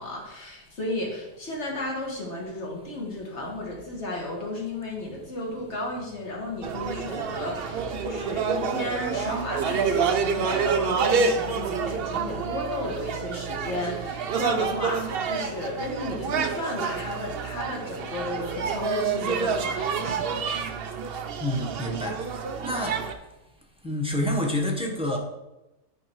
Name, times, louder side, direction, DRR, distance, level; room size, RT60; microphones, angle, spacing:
voice 1, 0.0-20.4, left 2 dB, 45° left, -1 dB, 1.9 m, -33 dB
sound 1, 6.6-23.1, right 6 dB, 70° right, 0.5 m, -28 dB
voice 2, 21.4-22.2 22.6-23.0 23.8-25.2, left 1 dB, 5° right, 0 dB, 0.8 m, -27 dB
9.8 x 4.4 x 4.7 m, 0.99 s
omnidirectional pair, 1.8 m